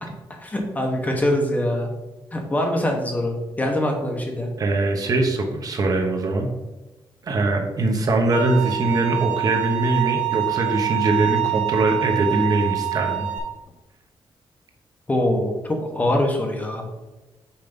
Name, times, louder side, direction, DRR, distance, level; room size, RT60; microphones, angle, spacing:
voice 1, 0.4-1.9 2.3-4.5 15.1-16.8, left 1 dB, 15° left, 2 dB, 0.9 m, -23 dB
voice 2, 4.6-6.5 7.3-13.3, right 2 dB, 45° right, 2 dB, 1.0 m, -22 dB
Bowed string instrument, 8.3-13.4, right 16 dB, 15° right, 1.2 m, -25 dB
5.5 x 4.5 x 5.3 m, 1.1 s
wide cardioid pair, 175°, 9 cm